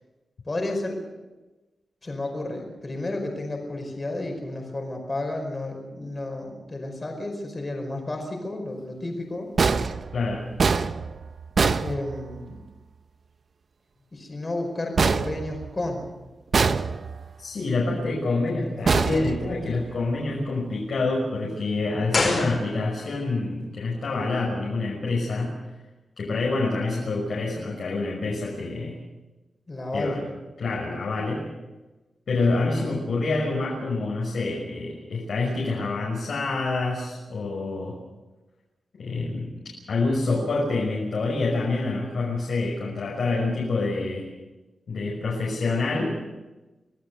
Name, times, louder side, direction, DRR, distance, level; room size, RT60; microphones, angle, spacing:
voice 1, 0.5-1.0 2.0-9.5 11.8-12.6 14.1-16.1 17.8-18.1 29.7-30.2, left 2 dB, 25° left, 3 dB, 5.0 m, -32 dB
sound 1, 9.6-12.6 15.0-16.1 16.5-17.4 18.9-20.0, right 5 dB, 45° right, 0.8 m, -25 dB
voice 2, 17.4-25.5 26.2-29.0 29.9-30.2 30.6-31.4 32.3-38.0 39.0-39.6 39.9-44.3 44.9-46.2, left 3 dB, 60° left, -3 dB, 6.0 m, -27 dB
sound 2, 22.1-23.2 23.4-23.5, left 3 dB, 40° left, 5.5 m, -27 dB
26.0 x 18.0 x 6.8 m, 1.1 s
wide cardioid pair, 180°, 0 cm